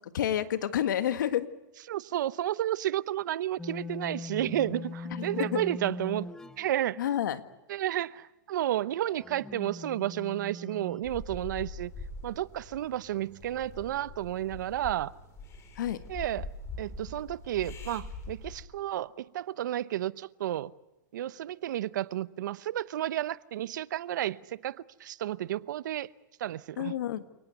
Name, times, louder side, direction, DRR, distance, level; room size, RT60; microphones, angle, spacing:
voice 1, 0.1-1.5 5.1-5.6 7.0-7.4 15.8-16.0 26.8-27.2, left 11 dB, 75° left, 10 dB, 1.8 m, -29 dB
voice 2, 1.9-6.3 6.6-7.0 7.7-11.9 12.2-15.1 16.1-16.5 16.8-20.7 21.1-26.1 26.4-26.9, right 13 dB, 70° right, 18 dB, 0.8 m, -32 dB
sound 1, 3.6-6.7 9.0-11.0, left 2 dB, 5° left, 0.9 m, -40 dB
sound 2, 11.0-18.6, left 2 dB, 25° left, 4.8 m, -43 dB
29.0 x 19.0 x 8.2 m, 1.0 s
hypercardioid pair, 130°, 10 cm